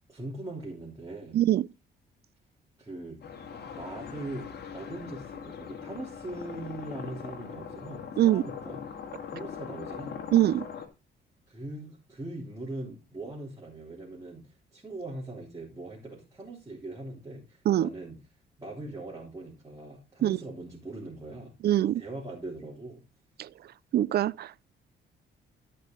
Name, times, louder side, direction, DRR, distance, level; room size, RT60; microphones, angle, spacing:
voice 1, 0.1-1.4 2.8-3.2 3.7-8.8 9.3-10.2 11.5-18.2 18.6-21.5 21.8-23.0, right 2 dB, 15° right, 3.3 m, -41 dB
voice 2, 1.3-1.7 8.2-8.4 10.3-10.7 17.7-17.9 20.2-20.4 21.6-22.0 23.4-23.5 23.9-24.6, right 12 dB, 55° right, 0.4 m, -23 dB
sound 1, 3.2-10.9, left 7 dB, 55° left, 2.0 m, -41 dB
13.5 x 5.4 x 3.8 m
cardioid pair, 90°, 20 cm